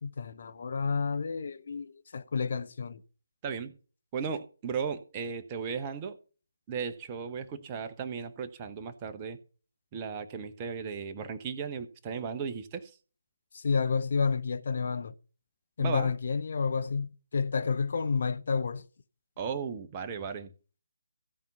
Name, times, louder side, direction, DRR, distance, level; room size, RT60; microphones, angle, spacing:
voice 1, 0.0-3.0 13.5-15.1 15.8-18.8, left 5 dB, 45° left, 0.7 m, -30 dB
voice 2, 3.4-3.7 4.1-6.2 6.7-9.4 9.9-12.9 15.8-16.1 19.4-20.5, right 6 dB, 20° right, 1.0 m, -36 dB
16.0 x 5.4 x 5.7 m
figure-of-eight pair, 150°, 0 cm